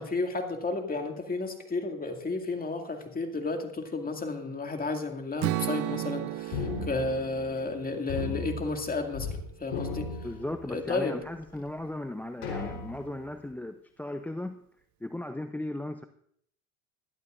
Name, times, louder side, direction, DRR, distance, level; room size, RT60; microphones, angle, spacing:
voice 1, 0.0-10.2 10.7-11.2, left 3 dB, 20° left, 4 dB, 2.2 m, -32 dB
Strum, 5.4-9.6, right 16 dB, 40° right, 0.6 m, -35 dB
sound 1, 6.5-7.8 8.1-9.4 9.6-11.0 11.5-11.6 12.4-13.3, left 4 dB, 70° left, 3.9 m, -36 dB
voice 2, 10.2-14.6 15.0-16.0, left 1 dB, 5° left, 8 dB, 0.5 m, -36 dB
21.5 x 12.0 x 2.5 m, 0.66 s
hypercardioid pair, 85°, 45 cm